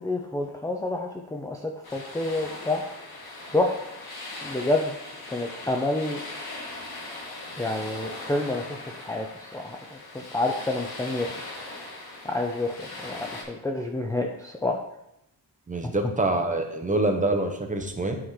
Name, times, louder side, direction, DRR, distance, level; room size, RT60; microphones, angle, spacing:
voice 1, 0.0-2.8 3.5-3.7 4.4-4.9 5.3-6.2 7.6-8.7 9.0-9.3 9.5-11.3 12.2-14.8 15.8-15.9, left 2 dB, 10° left, 1 dB, 0.4 m, -28 dB
sound 1, 1.8-13.4, left 2 dB, 60° left, 1.6 m, -40 dB
voice 2, 15.7-18.2, right 2 dB, 20° right, 4 dB, 0.8 m, -25 dB
9.0 x 3.7 x 4.8 m, 0.83 s
wide cardioid pair, 145°, 41 cm